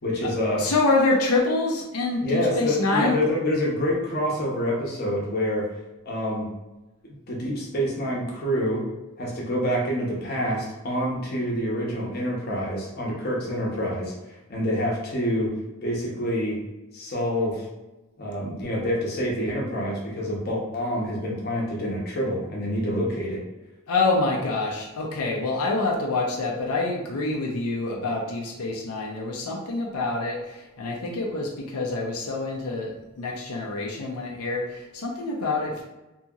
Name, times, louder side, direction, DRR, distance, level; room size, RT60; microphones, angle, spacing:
voice 1, 0.0-0.7 2.2-5.7 6.0-6.5 7.3-8.9 9.2-15.5 15.8-16.6 16.9-17.7 18.2-23.4, equal, 45° left, -3 dB, 0.7 m, -27 dB
voice 2, 0.6-3.2 23.9-35.8, left 3 dB, 90° left, -1 dB, 0.5 m, -26 dB
2.8 x 2.7 x 2.3 m, 1.0 s
head